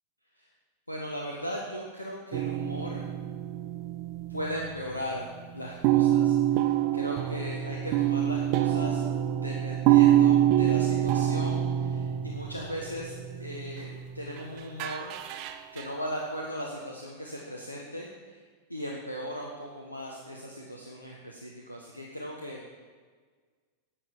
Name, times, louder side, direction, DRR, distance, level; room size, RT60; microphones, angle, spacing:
voice 1, 0.9-3.0 4.3-5.3 5.5-15.1 15.7-18.4 18.7-22.6, equal, 85° left, -2 dB, 1.4 m, -38 dB
sound 1, 2.3-4.8 5.1-5.4 5.8-14.4 14.8-15.8, right 12 dB, 45° right, 0.8 m, -26 dB
11.0 x 7.7 x 8.6 m, 1.5 s
figure-of-eight pair, 90°, 0 cm